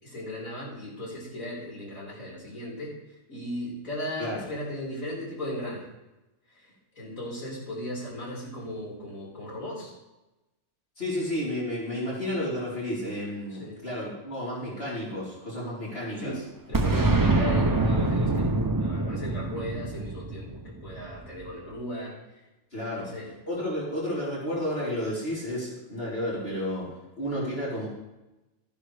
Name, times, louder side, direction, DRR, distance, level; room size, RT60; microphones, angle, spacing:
voice 1, 0.0-3.0 3.3-5.8 6.5-6.6 7.0-9.9 13.6-13.8 16.2-16.4 16.7-22.1 22.9-23.3, equal, 65° left, -5 dB, 5.4 m, -36 dB
voice 2, 11.0-16.3 22.7-23.1 23.5-26.9 27.2-27.9, left 1 dB, 45° left, -8 dB, 4.2 m, -31 dB
Boom, 16.7-21.4, right 2 dB, 30° right, 0.4 m, -25 dB
14.5 x 11.0 x 3.4 m, 1.0 s
omnidirectional pair, 1.5 m